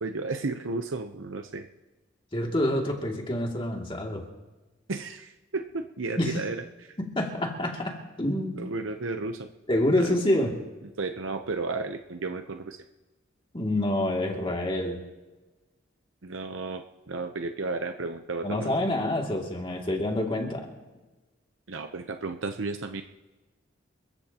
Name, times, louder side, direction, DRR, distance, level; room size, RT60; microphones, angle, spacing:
voice 1, 0.0-1.7 4.9-7.0 8.5-9.5 10.0-10.1 11.0-12.8 16.2-18.7 21.7-23.0, right 3 dB, 80° right, 6 dB, 0.8 m, -33 dB
voice 2, 2.3-4.3 6.2-6.4 7.0-8.7 9.7-10.6 13.5-15.0 18.4-20.7, left 1 dB, 25° left, 0 dB, 2.5 m, -27 dB
27.5 x 15.0 x 2.9 m, 1.2 s
head